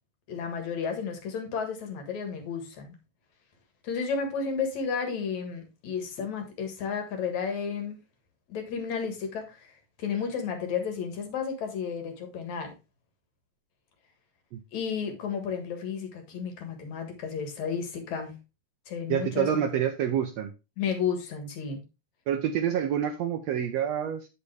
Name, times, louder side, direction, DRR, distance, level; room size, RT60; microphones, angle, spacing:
voice 1, 0.3-2.9 3.8-8.0 8.5-9.7 10.0-12.7 14.7-18.3 18.9-19.6 20.8-21.8, left 6 dB, 65° left, 2.9 m, -32 dB
voice 2, 19.1-20.5 22.3-24.3, right 9 dB, 75° right, 1.6 m, -27 dB
8.4 x 6.8 x 3.3 m
omnidirectional pair, 3.6 m